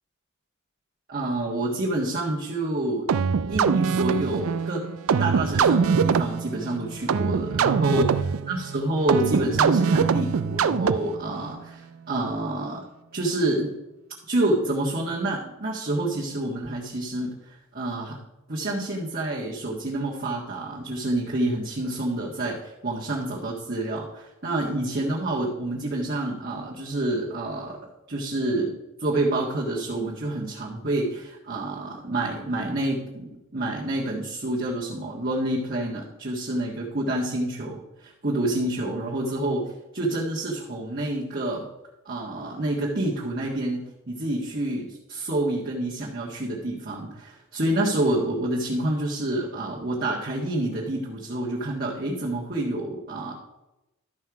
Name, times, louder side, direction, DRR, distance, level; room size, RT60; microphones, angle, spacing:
voice 1, 1.1-3.1 3.5-4.9 5.2-8.1 8.5-11.8 12.1-12.8 13.1-13.7 14.3-18.2 18.5-27.8 28.1-28.7 29.0-41.6 42.0-53.3, right 1 dB, 45° right, -6 dB, 1.7 m, -28 dB
sound 1, 3.1-11.3, right 6 dB, 85° right, 0.4 m, -23 dB
12.5 x 5.6 x 4.8 m, 0.97 s
head